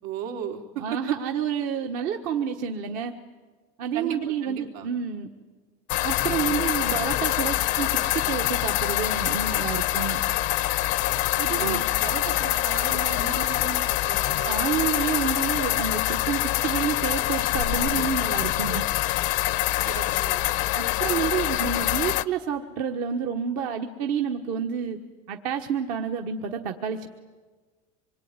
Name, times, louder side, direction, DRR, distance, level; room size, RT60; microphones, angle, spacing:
voice 1, 0.0-1.0 3.9-4.9 11.4-14.6 19.8-20.4, right 9 dB, 75° right, 2 dB, 3.9 m, -35 dB
voice 2, 0.8-3.1 3.8-5.3 6.0-10.2 11.6-11.8 14.4-18.9 20.8-25.0 25.3-27.1, right 7 dB, 45° right, 4 dB, 1.5 m, -29 dB
sound 1, 5.9-22.2, left 16 dB, 40° left, 0.8 m, -25 dB
26.0 x 22.5 x 9.8 m, 1.4 s
supercardioid pair, 170°, 20 cm